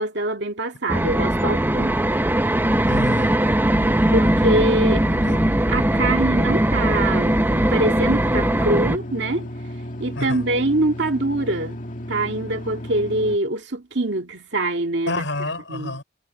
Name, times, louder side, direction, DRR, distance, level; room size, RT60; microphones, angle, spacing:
voice 1, 0.0-2.0 4.1-5.1 5.7-7.4 7.7-9.5 10.0-11.8 12.1-15.3 15.7-16.0, right 2 dB, 65° right, 2.3 m, -24 dB
sound 1, 0.9-9.0, right 1 dB, 10° right, 0.7 m, -20 dB
voice 2, 2.9-3.4 5.1-5.5 10.1-10.5 15.0-16.0, left 2 dB, 85° left, 4.6 m, -29 dB
sound 2, 3.7-13.4, equal, 45° left, 2.0 m, -34 dB
head